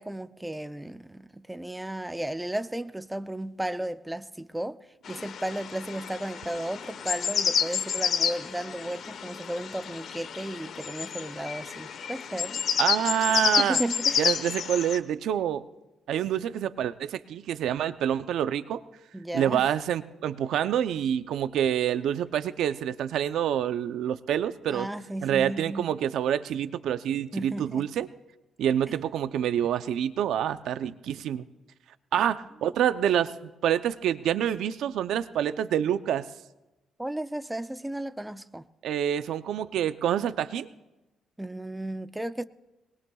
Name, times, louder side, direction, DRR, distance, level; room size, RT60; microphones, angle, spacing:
voice 1, 0.0-4.8 5.1-12.6 13.6-14.3 19.1-19.7 24.7-25.9 27.3-27.9 37.0-38.6 41.4-42.4, right 1 dB, 10° right, 0.5 m, -34 dB
sound 1, 5.1-15.0, left 7 dB, 65° left, 1.1 m, -30 dB
voice 2, 12.8-13.8 14.2-15.6 16.1-18.8 19.3-24.9 25.2-28.1 28.6-31.5 32.1-33.3 33.6-36.2 38.8-40.7, right 10 dB, 80° right, 0.6 m, -27 dB
22.5 x 20.5 x 2.4 m
cardioid pair, 90°, 0 cm